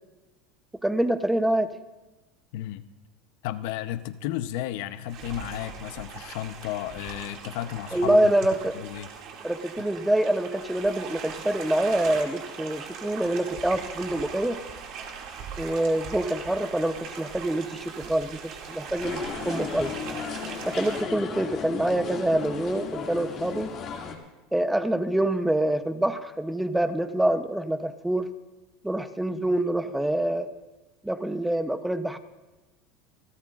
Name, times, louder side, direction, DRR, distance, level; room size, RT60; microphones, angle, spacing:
voice 1, 0.8-1.7 7.9-8.7 9.4-14.6 15.6-19.9 20.7-23.7 24.5-28.3 28.8-30.5 31.0-32.2, right 1 dB, 5° right, 9 dB, 0.8 m, -26 dB
voice 2, 2.5-2.8 3.4-8.2 8.7-9.1 9.8-9.9, left 13 dB, 70° left, 12 dB, 0.7 m, -33 dB
sound 1, 5.1-21.0, right 6 dB, 55° right, 2.3 m, -40 dB
sound 2, 19.0-24.1, left 6 dB, 40° left, 2.2 m, -35 dB
28.0 x 13.5 x 2.5 m, 1.1 s
supercardioid pair, 140°, 0 cm